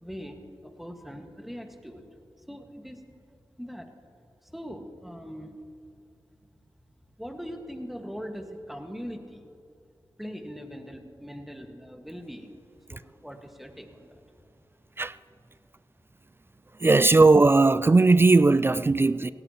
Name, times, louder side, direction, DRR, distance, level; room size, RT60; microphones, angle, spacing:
voice 1, 0.0-2.1 2.4-3.0 3.6-3.9 4.4-5.6 7.2-9.5 10.2-12.5 12.9-14.2 15.0-15.1, equal, ahead, 1.7 m, -41 dB
voice 2, 16.8-19.3, right 3 dB, 25° right, 0.3 m, -18 dB
18.0 x 17.0 x 3.0 m
cardioid pair, 45°, 8 cm